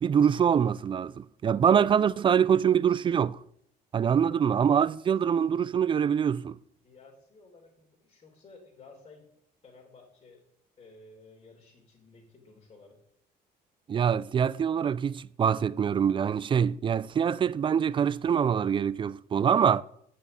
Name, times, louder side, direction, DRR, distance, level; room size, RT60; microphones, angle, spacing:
voice 1, 0.0-3.4 3.9-6.6 13.9-19.8, right 8 dB, 30° right, 0.3 m, -24 dB
voice 2, 6.8-9.3 9.6-10.4 10.8-13.0, left 3 dB, 35° left, 3.1 m, -54 dB
8.6 x 5.5 x 7.7 m
cardioid pair, 110°, 17 cm